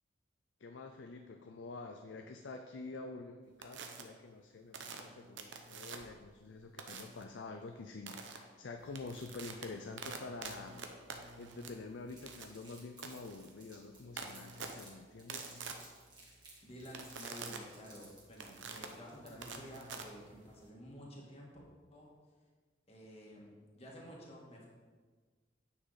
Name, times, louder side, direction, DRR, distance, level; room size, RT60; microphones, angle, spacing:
voice 1, 0.6-10.9 11.4-15.6, left 3 dB, 80° left, 6 dB, 0.5 m, -47 dB
sound 1, 3.6-4.0 4.7-6.2 6.8-7.2 8.1-8.4 8.8-20.7, right 5 dB, 85° right, 0.9 m, -47 dB
Crumpling crinkling, 12.1-14.9 15.2-19.6, right 3 dB, 25° right, 2.0 m, -58 dB
voice 2, 16.6-21.5 21.9-22.1 22.9-24.7, equal, 35° left, -3 dB, 1.8 m, -51 dB
9.6 x 5.9 x 4.0 m, 1.5 s
head